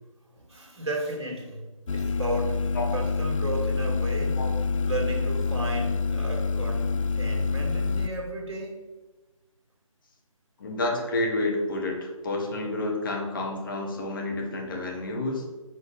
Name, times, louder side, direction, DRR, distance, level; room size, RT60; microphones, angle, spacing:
voice 1, 0.4-4.4 4.8-8.8, right 2 dB, 50° right, 0 dB, 2.1 m, -34 dB
sound 1, 1.9-8.1, left 4 dB, 65° left, 0.5 m, -27 dB
voice 2, 10.6-15.5, left 2 dB, 40° left, 0 dB, 1.5 m, -29 dB
5.8 x 5.1 x 5.6 m, 1.2 s
figure-of-eight pair, 150°, 18 cm